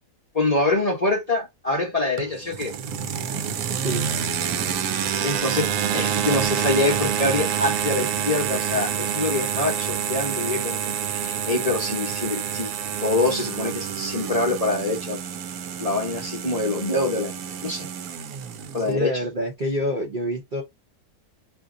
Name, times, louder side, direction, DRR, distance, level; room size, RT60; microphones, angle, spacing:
voice 1, 0.3-2.7 5.2-12.7 13.0-15.2 15.8-17.9 18.7-19.1, left 2 dB, 30° left, 0.8 m, -25 dB
sound 1, 2.2-18.9, right 8 dB, 75° right, 1.0 m, -28 dB
voice 2, 18.9-20.6, equal, 45° right, 0.7 m, -27 dB
2.8 x 2.4 x 3.7 m
omnidirectional pair, 1.6 m